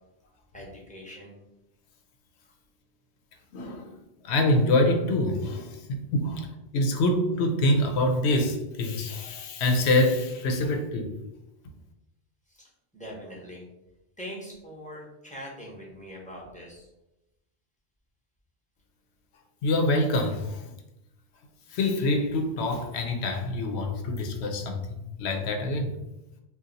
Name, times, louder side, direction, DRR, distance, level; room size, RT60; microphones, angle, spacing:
voice 1, 0.5-1.4 2.4-2.5 12.5-13.6 14.2-16.9, equal, 10° left, -4 dB, 0.7 m, -42 dB
voice 2, 3.5-4.0 4.2-5.8 6.1-6.5 6.7-11.1 19.6-20.6 21.7-26.0, left 1 dB, 80° left, 4 dB, 0.8 m, -25 dB
2.6 x 2.4 x 3.9 m, 0.91 s
omnidirectional pair, 1.1 m